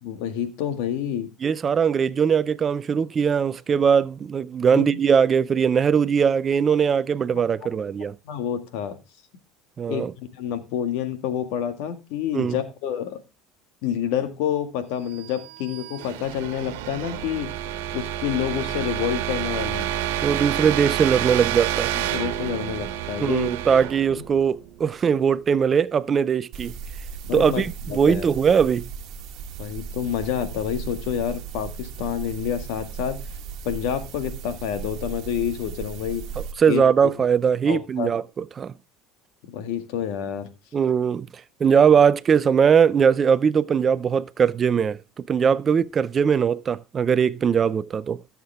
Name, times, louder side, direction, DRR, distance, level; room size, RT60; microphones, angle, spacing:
voice 1, 0.0-1.3 4.7-5.0 7.3-7.4 8.3-9.0 9.9-13.2 13.8-17.5 17.9-19.9 22.1-23.5 24.1-24.2 27.2-27.6 27.9-28.3 29.6-33.2 33.6-36.2 36.7-37.1 37.7-38.1 39.4-40.5, left 9 dB, 75° left, 1.9 m, -28 dB
voice 2, 1.4-8.2 9.8-10.1 12.3-12.6 20.2-21.9 23.2-26.7 27.3-28.9 36.6-38.7 40.7-41.3 41.6-48.2, right 7 dB, 30° right, 0.5 m, -20 dB
sound 1, 15.3-25.1, right 12 dB, 85° right, 1.4 m, -29 dB
sound 2, 26.5-36.5, right 6 dB, 55° right, 1.5 m, -36 dB
15.5 x 7.3 x 3.5 m
supercardioid pair, 110°, 0 cm